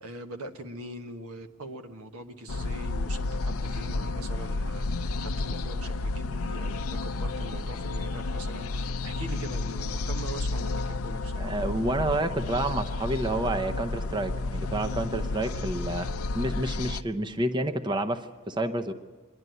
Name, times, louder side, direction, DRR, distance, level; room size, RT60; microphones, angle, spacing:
voice 1, 0.0-11.5, right 1 dB, 85° right, 5 dB, 1.4 m, -42 dB
sound 1, 2.5-17.0, left 3 dB, 75° left, 0.5 m, -31 dB
voice 2, 11.4-16.1 16.3-18.9, right 1 dB, 20° right, 7 dB, 0.7 m, -29 dB
26.5 x 11.0 x 9.3 m, 1.3 s
head